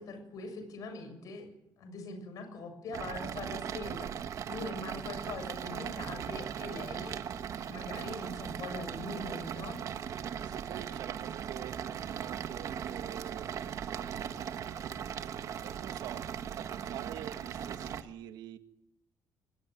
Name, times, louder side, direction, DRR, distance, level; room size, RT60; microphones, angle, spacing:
voice 1, 0.0-1.5 1.8-7.2 7.6-9.8, left 3 dB, 55° left, 7 dB, 7.2 m, -42 dB
sound 1, 2.9-18.0, right 8 dB, 50° right, 1.5 m, -38 dB
voice 2, 10.4-13.5 15.5-18.6, right 12 dB, 85° right, 9 dB, 1.9 m, -46 dB
23.5 x 19.5 x 9.3 m, 0.79 s
cardioid pair, 160°, 7 cm